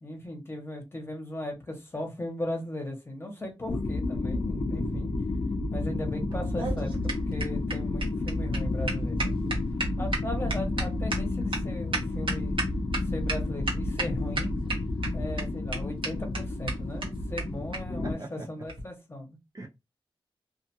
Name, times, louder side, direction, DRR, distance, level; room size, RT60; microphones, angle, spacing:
voice 1, 0.0-5.1 5.7-9.3 10.0-14.5 15.1-19.4, left 1 dB, 25° left, 1.0 m, -37 dB
sound 1, 3.7-18.1, left 2 dB, 50° left, 0.5 m, -31 dB
voice 2, 4.8-5.1 9.4-9.5 10.6-10.8 18.0-18.5 19.5-19.7, right 2 dB, 40° right, 0.5 m, -40 dB
sound 2, 6.3-13.0 13.3-13.4 13.7-14.1 14.4-15.1 15.4-15.5 15.7-15.8 16.0-16.1 16.3-16.4 16.7-16.8 17.0-17.1 17.4-17.5 17.7-17.8 18.7-18.8, right 2 dB, 65° right, 1.0 m, -31 dB
2.5 x 2.4 x 2.8 m
wide cardioid pair, 105°, 10 cm